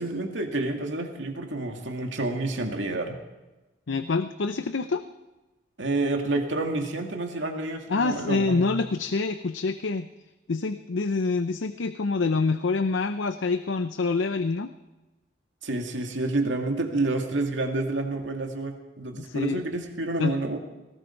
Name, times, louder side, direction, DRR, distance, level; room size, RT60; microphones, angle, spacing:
voice 1, 0.0-3.2 5.8-8.8 15.6-20.6, right 2 dB, 85° right, 3 dB, 2.3 m, -29 dB
voice 2, 3.9-5.0 7.9-10.1 10.5-14.7 19.2-19.6 20.2-20.3, left 4 dB, 90° left, 10 dB, 0.6 m, -26 dB
18.5 x 17.0 x 4.6 m, 1.1 s
head